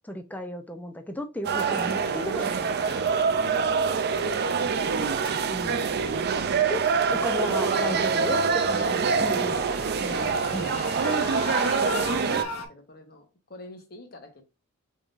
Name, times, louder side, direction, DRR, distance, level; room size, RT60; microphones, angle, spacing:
voice 1, 0.1-2.9 5.5-5.8 6.7-9.7 10.0-10.7, left 1 dB, 10° left, 0.6 m, -35 dB
sound 1, 1.4-12.4, right 5 dB, 50° right, 0.4 m, -25 dB
sound 2, 1.6-12.7, left 1 dB, 75° left, 1.4 m, -38 dB
voice 2, 1.8-2.6 3.1-4.6 8.7-9.6 11.8-14.4, left 1 dB, 45° left, 1.1 m, -46 dB
sound 3, 3.6-11.0, right 4 dB, 80° right, 1.1 m, -50 dB
4.7 x 3.7 x 2.6 m
head